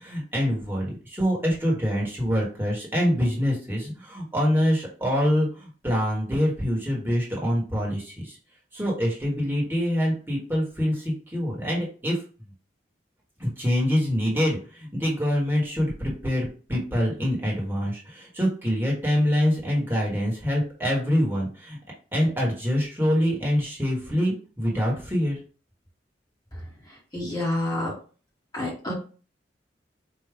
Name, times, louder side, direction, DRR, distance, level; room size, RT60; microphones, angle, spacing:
voice 1, 0.0-8.4 8.7-12.2 13.4-21.8 22.1-25.4, equal, 10° right, -3 dB, 1.1 m, -25 dB
voice 2, 26.5-27.9 28.5-28.9, left 1 dB, 20° left, -4 dB, 1.1 m, -30 dB
4.6 x 2.2 x 3.4 m, 0.37 s
head